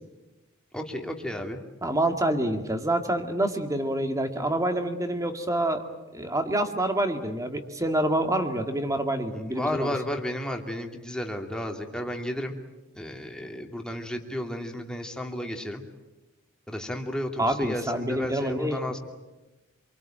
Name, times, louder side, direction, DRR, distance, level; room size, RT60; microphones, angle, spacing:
voice 1, 0.7-1.6 9.5-12.5 12.9-15.8 16.7-19.0, left 1 dB, 5° left, 3 dB, 2.6 m, -32 dB
voice 2, 1.8-5.8 6.1-9.9 17.4-18.8, right 1 dB, 15° right, 7 dB, 2.2 m, -27 dB
27.5 x 23.5 x 9.0 m, 1.1 s
head